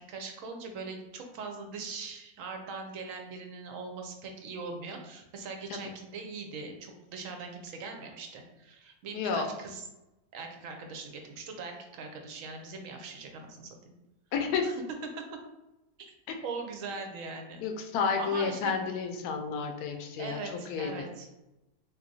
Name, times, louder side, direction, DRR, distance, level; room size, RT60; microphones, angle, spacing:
voice 1, 0.0-9.8 10.3-13.8 14.6-14.7 15.2-15.4 16.4-17.6 18.2-18.7 20.2-21.3, right 4 dB, 70° right, 3 dB, 0.8 m, -41 dB
voice 2, 9.1-9.5 14.3-14.7 16.3-16.4 17.6-20.4 20.7-21.1, left 5 dB, 75° left, 3 dB, 1.1 m, -31 dB
3.7 x 2.8 x 2.6 m, 0.97 s
omnidirectional pair, 1.7 m